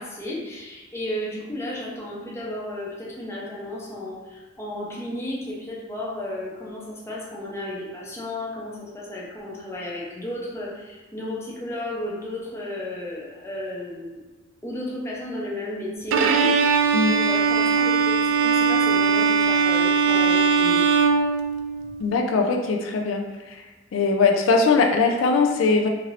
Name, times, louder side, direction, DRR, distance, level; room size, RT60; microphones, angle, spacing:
voice 1, 0.0-14.2 14.6-21.0, left 1 dB, 15° left, -5 dB, 0.6 m, -33 dB
Bowed string instrument, 16.1-22.0, right 5 dB, 75° right, 0.3 m, -20 dB
voice 2, 22.0-23.2 23.9-25.9, left 4 dB, 85° left, 2 dB, 0.4 m, -20 dB
2.8 x 2.5 x 3.0 m, 1.2 s
head